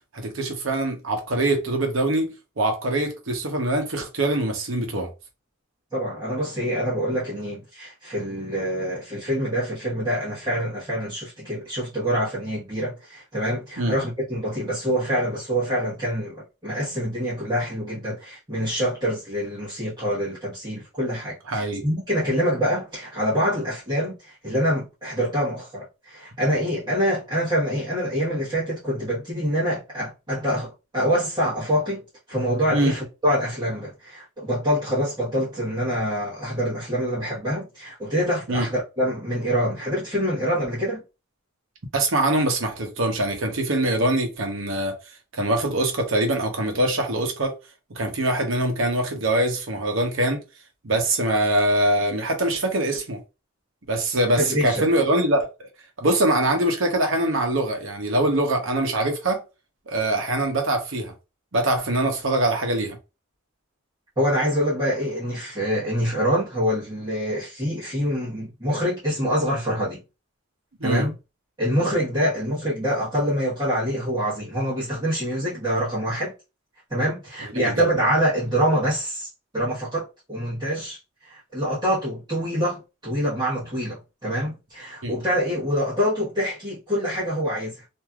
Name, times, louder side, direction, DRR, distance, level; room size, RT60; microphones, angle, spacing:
voice 1, 0.1-5.1 13.8-14.0 21.5-21.8 32.7-32.9 38.5-38.7 41.9-45.0 45.3-47.5 47.9-50.4 50.8-53.2 53.9-55.7 56.0-59.4 59.9-61.1 61.5-63.0 70.8-71.1 77.5-77.8 85.0-85.2, right 1 dB, 65° right, 0.9 m, -23 dB
voice 2, 5.9-32.0 32.3-41.0 54.4-54.8 64.2-70.0 70.8-71.1 71.6-76.3 76.9-79.3 79.5-81.0 81.2-87.9, equal, 20° right, 1.2 m, -25 dB
3.2 x 2.6 x 2.3 m
head